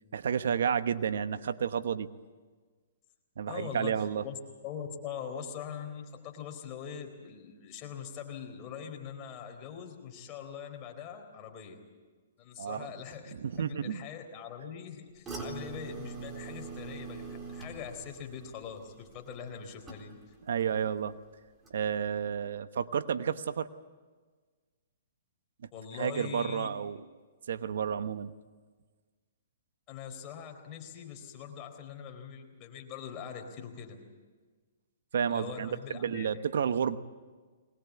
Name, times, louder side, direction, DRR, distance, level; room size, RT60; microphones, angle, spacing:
voice 1, 0.1-2.1 3.4-4.2 12.6-12.9 13.3-14.0 20.5-21.1 21.7-23.7 25.9-27.0 27.5-28.3 35.1-37.0, right 7 dB, 70° right, 12 dB, 1.0 m, -31 dB
voice 2, 3.5-4.4 4.6-11.8 12.4-20.2 25.7-26.7 29.9-34.0 35.3-36.3, left 7 dB, 30° left, 3 dB, 4.0 m, -42 dB
sound 1, 15.3-20.5 20.8-21.2 21.6-21.7, right 4 dB, 15° right, 3.9 m, -43 dB
22.0 x 20.5 x 8.3 m, 1.4 s
hypercardioid pair, 145°, 0 cm